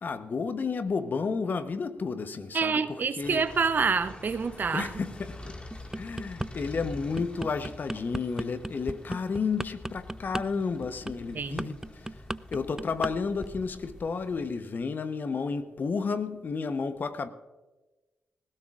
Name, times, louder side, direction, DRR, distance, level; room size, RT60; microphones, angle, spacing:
voice 1, 0.0-3.5 4.7-5.6 6.0-12.2 12.5-17.3, left 5 dB, 50° left, 1.0 m, -32 dB
voice 2, 2.5-4.9 11.3-11.8, right 5 dB, 50° right, 0.7 m, -27 dB
sound 1, 3.2-14.5, left 2 dB, 30° left, 1.9 m, -46 dB
sound 2, 5.7-6.5 6.9-13.1 13.4-13.7, right 1 dB, 10° right, 0.3 m, -35 dB
18.5 x 16.0 x 2.5 m
hypercardioid pair, 40°, 4 cm